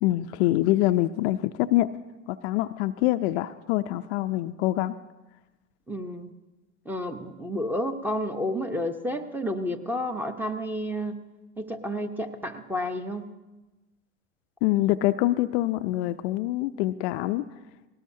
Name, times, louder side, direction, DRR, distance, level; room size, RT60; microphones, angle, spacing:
voice 1, 0.0-1.9 2.3-5.0 14.6-17.5, left 16 dB, 55° left, 10 dB, 0.5 m, -25 dB
voice 2, 5.9-6.3 6.9-11.1 11.6-13.3, equal, 5° right, 8 dB, 0.9 m, -30 dB
18.5 x 18.0 x 2.8 m, 1.1 s
hypercardioid pair, 95°, 41 cm